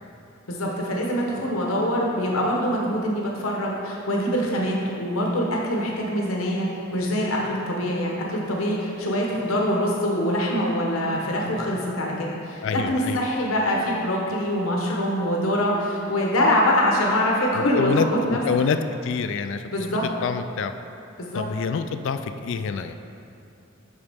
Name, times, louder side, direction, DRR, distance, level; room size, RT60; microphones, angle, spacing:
voice 1, 0.5-18.4 19.6-20.0 21.2-21.4, equal, 80° left, -2 dB, 1.0 m, -24 dB
voice 2, 12.6-13.2 17.5-18.8 19.0-20.7 21.3-22.9, left 5 dB, 60° left, 9 dB, 0.3 m, -27 dB
10.5 x 4.0 x 3.5 m, 2.7 s
head